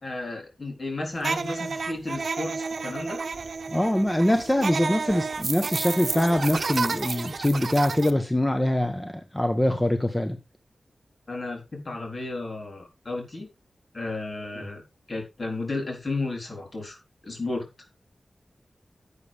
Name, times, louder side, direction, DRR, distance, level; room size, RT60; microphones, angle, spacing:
voice 1, 0.0-3.2 11.3-13.5 13.9-14.8 15.1-17.0 17.2-17.7, left 2 dB, 50° left, 3.9 m, -33 dB
sound 1, 1.2-8.1, right 4 dB, 75° right, 0.8 m, -31 dB
voice 2, 3.7-10.4, left 1 dB, 15° left, 1.1 m, -24 dB
10.5 x 8.4 x 3.5 m
wide cardioid pair, 70°, 0 cm